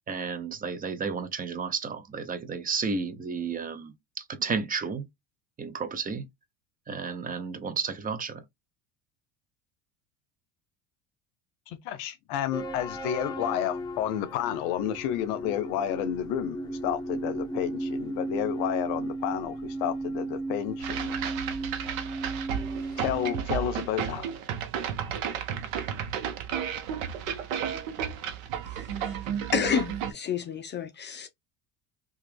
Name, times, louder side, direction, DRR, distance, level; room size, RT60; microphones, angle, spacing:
voice 1, 0.1-5.1 5.6-6.3 6.9-8.4, right 5 dB, 20° right, 0.6 m, -32 dB
voice 2, 11.7-21.2 23.0-24.2, left 11 dB, 70° left, 0.6 m, -31 dB
sound 1, 12.5-23.4, right 2 dB, 10° left, 0.8 m, -35 dB
sound 2, 20.8-30.1, right 8 dB, 80° right, 0.8 m, -33 dB
voice 3, 28.8-29.2 29.5-31.3, left 7 dB, 30° left, 0.4 m, -30 dB
3.0 x 2.4 x 3.2 m
supercardioid pair, 95°, 40 cm